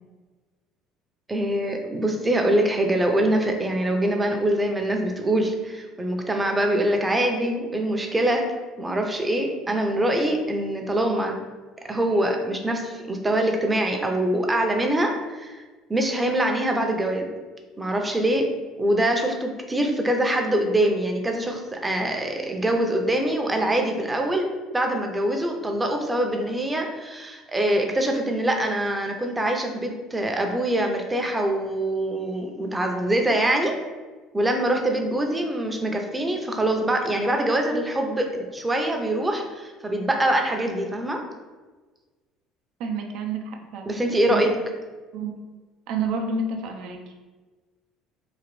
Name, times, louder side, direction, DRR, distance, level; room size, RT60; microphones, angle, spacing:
voice 1, 1.3-8.4 8.8-11.3 11.8-15.6 15.9-17.3 17.8-18.5 18.8-33.8 34.3-41.2 43.9-44.5, right 1 dB, 15° right, 3 dB, 0.5 m, -24 dB
voice 2, 42.8-43.9 44.3-44.5 45.1-45.3 45.9-47.1, right 4 dB, 70° right, 3 dB, 0.5 m, -29 dB
3.8 x 2.5 x 3.1 m, 1.3 s
supercardioid pair, 110°, 0 cm